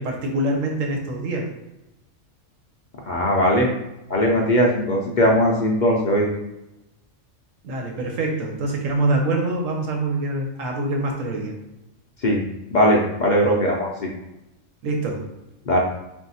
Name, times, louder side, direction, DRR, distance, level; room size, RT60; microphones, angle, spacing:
voice 1, 0.0-1.5 7.6-11.5 14.8-15.2, right 2 dB, 85° right, 0 dB, 1.3 m, -25 dB
voice 2, 3.1-3.7 4.1-6.3 12.2-12.4 12.7-14.1 15.7-15.8, equal, 55° left, -2 dB, 0.5 m, -19 dB
3.5 x 2.6 x 4.1 m, 0.95 s
omnidirectional pair, 1.3 m